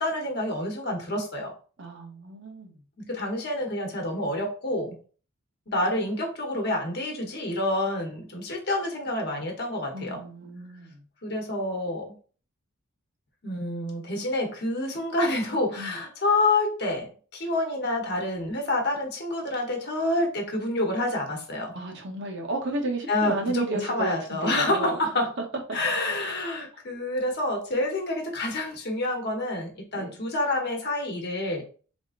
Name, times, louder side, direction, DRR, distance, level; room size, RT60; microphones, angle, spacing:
voice 1, 0.0-1.5 3.0-5.0 5.7-10.2 11.2-12.2 13.4-21.7 23.1-25.3 25.7-31.6, left 2 dB, 50° left, 1.1 m, -28 dB
voice 2, 1.8-2.8 9.9-11.0 15.8-16.0 21.7-25.0 29.9-30.2, right 2 dB, 55° right, 0.9 m, -33 dB
3.8 x 3.5 x 2.5 m
head